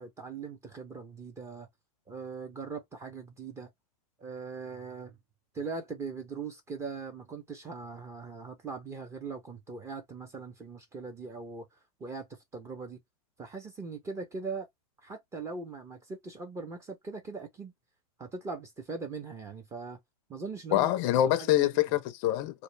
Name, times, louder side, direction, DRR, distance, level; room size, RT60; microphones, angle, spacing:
voice 1, 0.0-1.7 2.1-3.7 4.2-5.2 5.5-11.7 12.0-13.0 13.4-14.7 15.0-17.7 18.2-20.0 20.3-20.9 21.4-21.7, right 4 dB, 15° right, 0.5 m, -40 dB
voice 2, 20.7-22.6, left 13 dB, 40° left, 0.4 m, -25 dB
2.1 x 2.0 x 3.1 m
hypercardioid pair, 130°, 19 cm